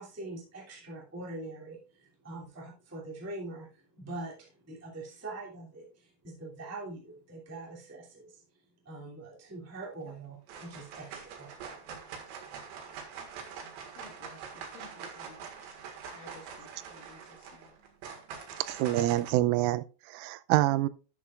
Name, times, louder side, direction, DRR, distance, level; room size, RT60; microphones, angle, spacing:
voice 1, 0.0-8.4 8.8-11.9, right 2 dB, 10° right, 0.9 m, -43 dB
sound 1, 9.8-10.2 10.5-19.3, right 6 dB, 70° right, 3.6 m, -44 dB
voice 2, 13.9-15.8 16.1-17.8, left 3 dB, 60° left, 2.7 m, -54 dB
voice 3, 18.7-20.9, right 15 dB, 90° right, 3.1 m, -27 dB
11.0 x 8.3 x 2.4 m
omnidirectional pair, 5.6 m